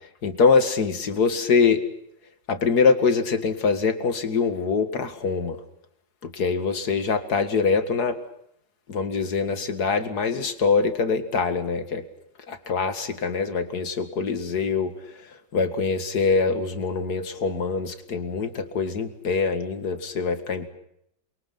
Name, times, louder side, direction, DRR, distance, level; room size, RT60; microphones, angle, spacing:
voice 1, 0.2-1.8 2.5-5.6 6.2-8.2 8.9-12.0 12.5-14.9 15.5-20.7, left 5 dB, 60° left, 9 dB, 2.5 m, -24 dB
28.5 x 23.0 x 6.0 m, 0.76 s
omnidirectional pair, 1.9 m